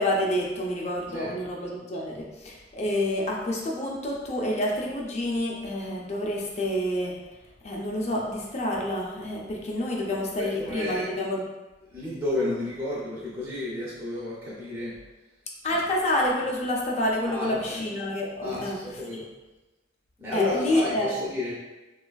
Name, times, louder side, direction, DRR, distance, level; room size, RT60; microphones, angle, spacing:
voice 1, 0.0-7.2 7.6-11.4 15.6-18.8 20.3-21.1, left 1 dB, 40° left, -2 dB, 0.5 m, -28 dB
voice 2, 10.4-11.1 11.9-14.9 17.3-17.8 18.4-19.2 20.2-21.5, left 2 dB, 10° right, -8 dB, 0.5 m, -31 dB
3.1 x 2.3 x 2.3 m, 1.1 s
head